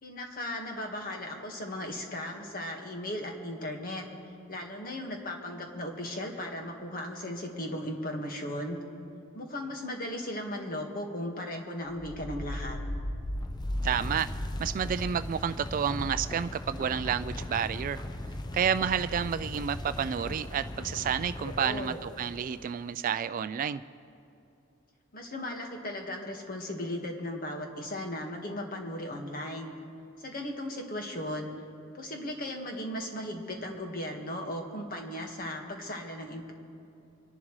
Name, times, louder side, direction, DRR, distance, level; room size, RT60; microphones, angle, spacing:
voice 1, 0.0-4.1 4.5-8.8 9.3-12.8 21.4-22.0 25.1-29.7 30.2-31.5 31.9-36.5, left 1 dB, 45° left, 2 dB, 1.6 m, -37 dB
sound 1, 11.9-22.7, left 1 dB, 20° left, 0.5 m, -37 dB
voice 2, 13.8-14.3 14.6-18.0 18.5-23.8, right 8 dB, 40° right, 13 dB, 0.3 m, -30 dB
25.0 x 11.0 x 3.2 m, 2.7 s
head